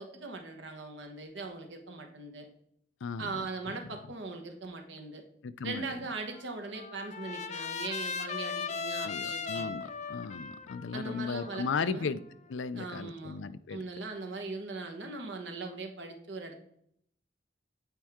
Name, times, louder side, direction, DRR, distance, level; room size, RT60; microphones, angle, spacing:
voice 1, 0.0-2.5 3.2-5.2 5.6-9.8 10.9-12.1 12.7-13.4 13.7-16.6, right 3 dB, 70° right, 1.3 m, -40 dB
voice 2, 3.0-3.4 5.4-5.8 9.0-12.2 12.5-13.8, left 5 dB, 90° left, 0.4 m, -36 dB
Trumpet, 6.3-12.5, left 5 dB, 40° left, 0.6 m, -38 dB
8.9 x 4.5 x 3.6 m
head